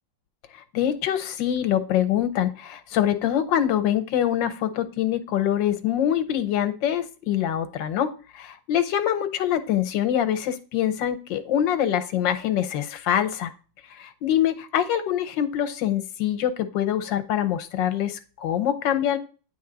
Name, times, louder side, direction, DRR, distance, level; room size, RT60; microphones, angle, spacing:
voice 1, 0.5-13.5 13.9-19.2, left 10 dB, 80° left, 10 dB, 1.5 m, -24 dB
9.5 x 3.5 x 3.8 m, 0.36 s
omnidirectional pair, 2.0 m